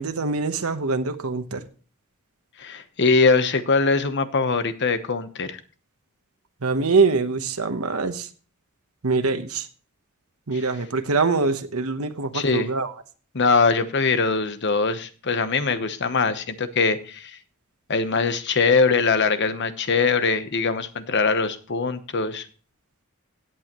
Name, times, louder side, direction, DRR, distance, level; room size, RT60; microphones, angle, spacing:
voice 1, 0.0-1.6 6.6-8.3 9.0-9.7 10.5-12.9, right 4 dB, 90° right, 8 dB, 1.1 m, -24 dB
voice 2, 2.6-5.6 12.3-12.7 13.3-17.4 17.9-22.5, left 4 dB, 55° left, 11 dB, 1.0 m, -22 dB
16.5 x 8.5 x 3.0 m, 0.39 s
head